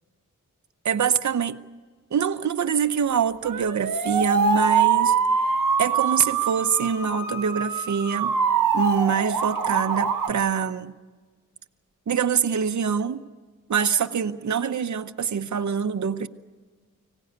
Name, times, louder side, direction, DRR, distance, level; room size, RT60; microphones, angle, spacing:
voice 1, 0.8-1.6 2.1-8.3 8.7-11.0 12.1-13.2 13.7-16.3, right 7 dB, 60° right, 9 dB, 0.8 m, -25 dB
sound 1, 3.4-10.3, right 5 dB, 90° right, 1.1 m, -24 dB
25.0 x 17.5 x 9.4 m, 1.4 s
wide cardioid pair, 125°, 32 cm